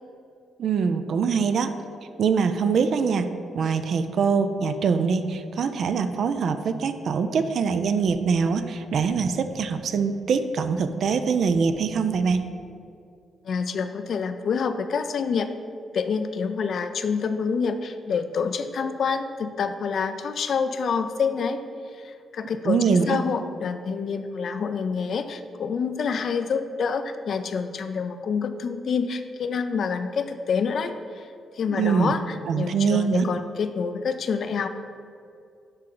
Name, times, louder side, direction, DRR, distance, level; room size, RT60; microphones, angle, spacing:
voice 1, 0.6-1.7 2.2-3.3 3.5-12.5 22.6-23.2 31.7-32.1 32.5-33.3, right 5 dB, 70° right, 9 dB, 0.4 m, -23 dB
voice 2, 13.4-15.5 15.9-21.6 21.9-31.3 31.5-34.7, left 5 dB, 65° left, 9 dB, 0.4 m, -27 dB
9.7 x 3.2 x 3.9 m, 2.4 s
supercardioid pair, 65°, 0 cm